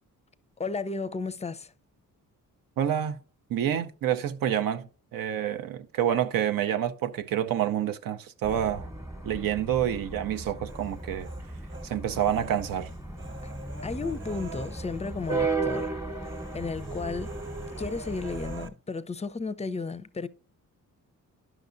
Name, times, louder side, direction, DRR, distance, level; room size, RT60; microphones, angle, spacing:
voice 1, 0.6-1.7 13.4-13.5 13.8-15.9 16.5-17.3 17.8-20.3, left 4 dB, 20° left, 0.5 m, -33 dB
voice 2, 2.8-3.2 3.5-4.8 5.1-8.9 9.2-11.3 11.8-12.9, right 10 dB, 90° right, 0.6 m, -28 dB
sound 1, 8.4-18.7, right 3 dB, 10° right, 0.9 m, -35 dB
Human voice, 10.7-11.9 12.2-15.4 15.7-15.9 16.2-18.7, right 2 dB, 35° right, 0.8 m, -45 dB
10.5 x 6.0 x 2.5 m
cardioid pair, 100°, 33 cm